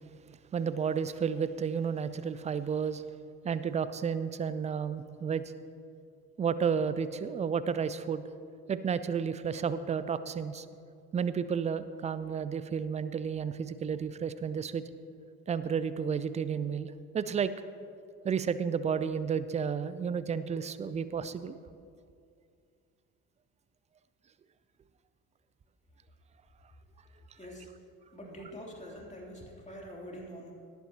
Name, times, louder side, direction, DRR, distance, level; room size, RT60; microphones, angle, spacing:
voice 1, 0.5-3.0 3.4-5.4 6.4-8.2 8.7-10.7 11.1-14.8 15.5-17.5 18.2-21.6, right 6 dB, 15° right, 14 dB, 0.4 m, -32 dB
voice 2, 27.4-27.7 28.1-30.5, equal, 15° left, -2 dB, 3.1 m, -45 dB
18.0 x 9.2 x 2.9 m, 2.4 s
figure-of-eight pair, 50°, 46 cm